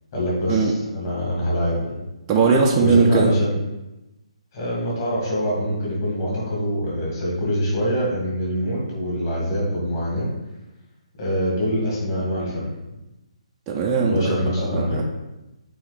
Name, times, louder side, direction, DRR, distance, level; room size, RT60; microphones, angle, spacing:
voice 1, 0.1-2.0 2.8-3.5 4.5-10.3 11.2-12.7 14.0-15.0, equal, 30° left, -5 dB, 1.8 m, -24 dB
voice 2, 2.3-3.3 13.7-14.2 14.6-15.0, right 4 dB, 10° right, -2 dB, 0.4 m, -19 dB
8.6 x 3.0 x 4.0 m, 1.0 s
hypercardioid pair, 175°, 4 cm